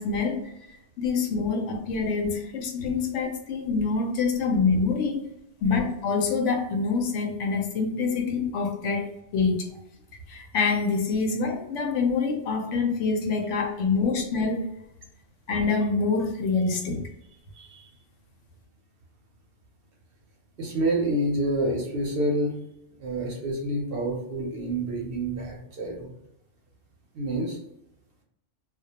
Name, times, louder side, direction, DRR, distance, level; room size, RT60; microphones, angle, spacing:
voice 1, 0.0-5.3 5.6-9.7 10.3-14.7 15.5-17.0, left 4 dB, 80° left, 2 dB, 0.9 m, -26 dB
voice 2, 17.5-17.9 20.6-22.5 23.0-26.2 27.1-27.6, right 1 dB, 60° right, -1 dB, 0.7 m, -28 dB
2.2 x 2.1 x 2.7 m, 0.82 s
omnidirectional pair, 1.2 m